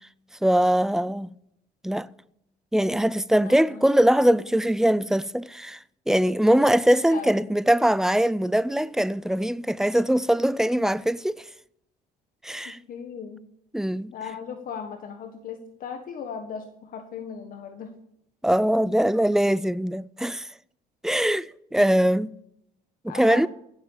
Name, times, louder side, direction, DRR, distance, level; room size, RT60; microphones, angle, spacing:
voice 1, 0.4-1.3 1.8-2.1 2.7-5.8 6.1-11.4 12.4-12.8 13.7-14.1 18.4-20.5 21.0-22.3 23.0-23.5, right 1 dB, 5° right, 0.4 m, -22 dB
voice 2, 3.4-3.9 4.2-4.4 6.4-6.8 7.1-7.5 12.6-13.4 14.1-17.9 23.1-23.5, left 6 dB, 55° left, 1.5 m, -38 dB
16.0 x 7.4 x 7.2 m
cardioid pair, 110°, 17 cm